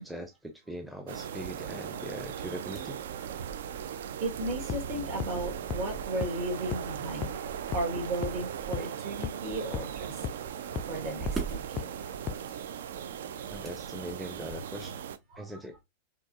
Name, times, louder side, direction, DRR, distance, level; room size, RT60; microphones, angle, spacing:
voice 1, 0.0-3.0 13.5-14.9 15.4-15.7, right 1 dB, 5° right, 0.6 m, -41 dB
sound 1, 1.1-15.2, right 8 dB, 60° right, 0.3 m, -39 dB
sound 2, 2.7-14.8, right 5 dB, 20° right, 2.0 m, -44 dB
voice 2, 4.2-7.4 7.7-10.2 10.9-12.1 15.3-15.5, right 1 dB, 45° right, 1.5 m, -35 dB
sound 3, 4.7-4.8 5.2-5.3 5.7-5.8 6.2-6.3 6.7-6.8 7.2-7.3 7.7-7.8 8.2-8.3 8.7-8.8 9.2-9.3 9.7-9.8 10.2-10.3 10.8-10.9 11.3-11.4 11.8-11.9 12.3-12.4, left 9 dB, 30° left, 0.3 m, -33 dB
4.6 x 3.0 x 2.5 m
figure-of-eight pair, 90°, 0 cm